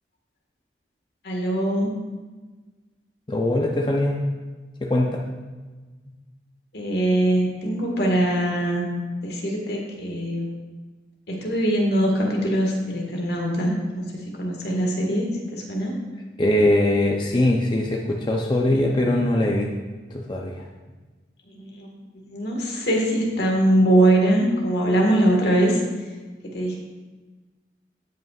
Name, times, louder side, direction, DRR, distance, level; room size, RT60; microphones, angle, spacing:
voice 1, 1.2-1.9 6.7-8.8 9.2-10.5 11.3-15.9 21.5-25.8 26.5-26.8, right 1 dB, 65° left, -1 dB, 1.7 m, -22 dB
voice 2, 3.3-4.2 4.8-5.2 16.4-19.7 20.1-20.6, left 1 dB, 25° left, -1 dB, 0.6 m, -21 dB
16.5 x 5.5 x 2.4 m, 1.3 s
head